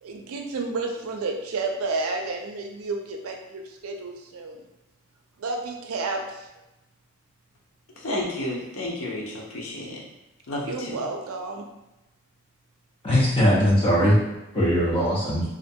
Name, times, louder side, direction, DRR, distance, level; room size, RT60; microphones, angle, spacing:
voice 1, 0.0-4.7 5.4-6.5 10.6-11.7, right 3 dB, 85° right, 3 dB, 0.4 m, -31 dB
voice 2, 8.0-10.0 10.5-10.9, left 1 dB, 85° left, -2 dB, 0.6 m, -31 dB
voice 3, 13.0-14.2 14.5-15.4, equal, 25° left, -6 dB, 0.7 m, -20 dB
2.4 x 2.2 x 2.6 m, 0.95 s
head